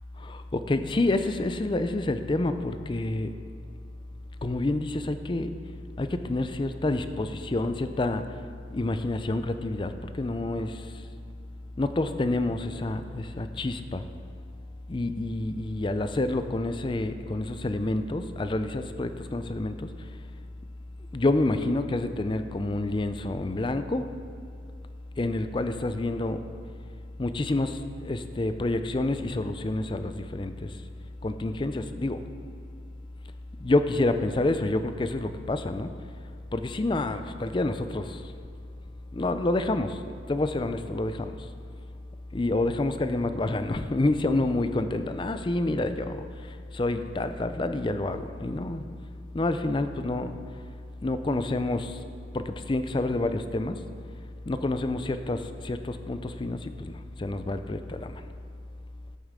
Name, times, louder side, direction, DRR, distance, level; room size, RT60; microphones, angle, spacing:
voice 1, 0.2-3.3 4.4-5.5 6.0-8.3 8.7-11.0 11.8-14.0 14.9-19.9 21.1-24.1 25.2-26.4 27.2-30.8 31.2-32.2 33.6-35.9 36.5-38.3 39.1-41.5 42.3-48.8 49.3-50.3 51.0-52.0 52.3-53.8 54.5-58.2, left 2 dB, 25° left, 9 dB, 0.4 m, -28 dB
13.0 x 8.5 x 3.7 m, 2.4 s
head